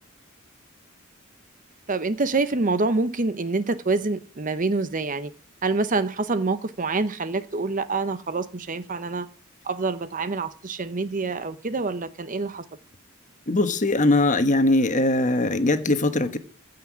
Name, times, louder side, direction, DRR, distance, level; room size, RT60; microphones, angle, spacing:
voice 1, 1.9-5.3 5.6-9.3 9.6-12.6, right 3 dB, 40° right, 0.8 m, -26 dB
voice 2, 13.5-16.4, left 2 dB, 35° left, 1.3 m, -21 dB
15.5 x 5.9 x 8.6 m
head